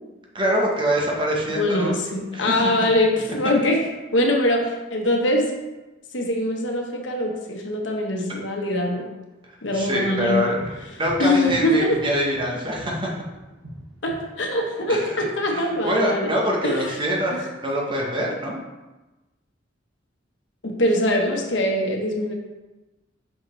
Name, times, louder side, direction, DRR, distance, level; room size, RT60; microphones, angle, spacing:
voice 1, 0.3-2.0 2.3-2.5 9.7-13.1 14.9-18.6, equal, 25° right, -2 dB, 1.0 m, -25 dB
voice 2, 1.5-3.8 4.1-5.4 6.1-9.1 9.6-10.5 11.2-12.0 14.0-16.3 16.6-16.9 17.3-17.4 20.6-22.3, left 1 dB, 75° left, 0 dB, 1.1 m, -23 dB
sound 1, 9.7-14.4, right 1 dB, 80° right, 1.4 m, -41 dB
5.9 x 5.1 x 3.2 m, 1.1 s
head